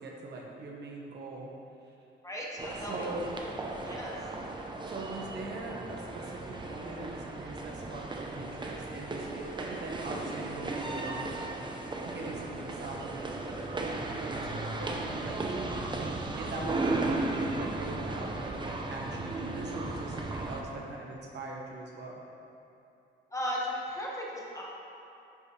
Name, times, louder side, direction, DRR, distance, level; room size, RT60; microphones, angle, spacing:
voice 1, 0.0-1.5 2.9-3.3 4.9-11.3 12.0-15.4 15.9-22.2, right 2 dB, 60° right, -2 dB, 1.4 m, -41 dB
voice 2, 2.2-3.5 3.8-4.2 23.3-24.6, equal, 15° left, -4 dB, 1.5 m, -36 dB
sound 1, 2.6-20.6, right 2 dB, 25° right, 0.8 m, -36 dB
10.0 x 5.5 x 3.3 m, 2.8 s
cardioid pair, 90°, 20 cm